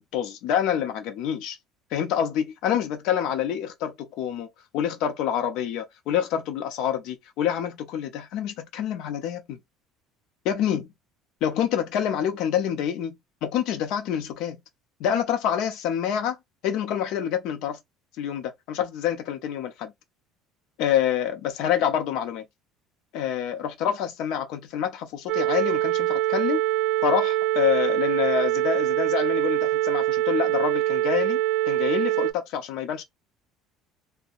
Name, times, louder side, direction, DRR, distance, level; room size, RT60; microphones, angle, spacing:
voice 1, 0.0-1.6 1.9-4.5 4.7-9.6 10.4-10.9 11.4-13.1 13.4-14.6 15.0-16.4 16.6-17.8 18.2-19.9 20.8-22.4 23.1-26.6 27.0-31.4 31.7-33.0, left 9 dB, 60° left, 0.6 m, -27 dB
sound 1, 25.3-32.3, right 15 dB, 55° right, 0.3 m, -24 dB
2.7 x 2.0 x 2.4 m
cardioid pair, 165°, 0 cm